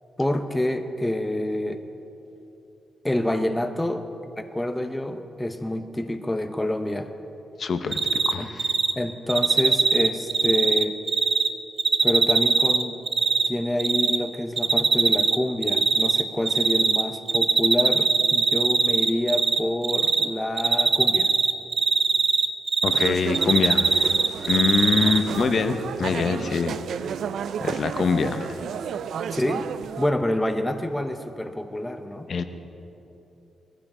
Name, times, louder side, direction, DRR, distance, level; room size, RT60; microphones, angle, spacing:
voice 1, 0.2-1.8 3.0-4.1 4.4-7.1 8.4-8.5 9.0-11.0 12.0-13.0 13.5-21.3 29.3-29.7 30.0-32.3, left 1 dB, 5° left, 7 dB, 0.6 m, -27 dB
voice 2, 7.6-8.7 22.8-23.9 24.5-26.8 27.6-28.6 32.3-32.4, left 5 dB, 45° left, 9 dB, 0.7 m, -24 dB
Cricket, 7.9-8.3 8.6-8.9 9.3-11.5 11.8-13.5 13.8-14.2 14.6-15.4 15.6-17.0 17.3-19.6 19.8-20.2 20.6-23.1 23.3-25.2, right 5 dB, 35° right, 0.7 m, -20 dB
sound 1, 22.9-30.1, right 8 dB, 75° right, 0.3 m, -32 dB
19.5 x 15.0 x 3.7 m, 2.9 s
wide cardioid pair, 150°, 0 cm